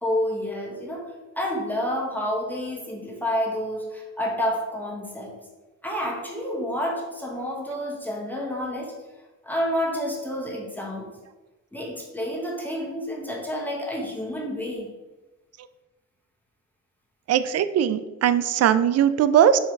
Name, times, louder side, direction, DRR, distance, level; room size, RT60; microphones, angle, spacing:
voice 1, 0.0-1.0 1.4-5.4 5.8-8.9 9.4-11.1 11.7-14.9, equal, 5° left, -2 dB, 1.2 m, -29 dB
voice 2, 17.3-19.6, right 9 dB, 55° right, 13 dB, 0.5 m, -20 dB
4.7 x 4.4 x 4.5 m, 1.2 s
cardioid pair, 90°, 30 cm